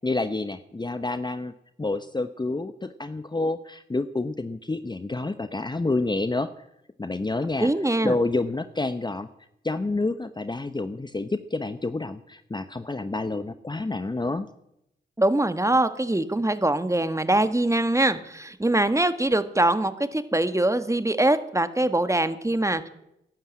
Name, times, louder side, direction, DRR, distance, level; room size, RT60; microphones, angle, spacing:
voice 1, 0.0-1.5 1.8-6.5 7.0-7.7 8.0-9.3 9.6-14.5, left 2 dB, 20° left, 11 dB, 0.9 m, -28 dB
voice 2, 7.6-8.2 15.2-22.9, right 1 dB, 15° right, 11 dB, 1.6 m, -23 dB
13.5 x 11.0 x 8.8 m, 0.81 s
supercardioid pair, 40°, 21 cm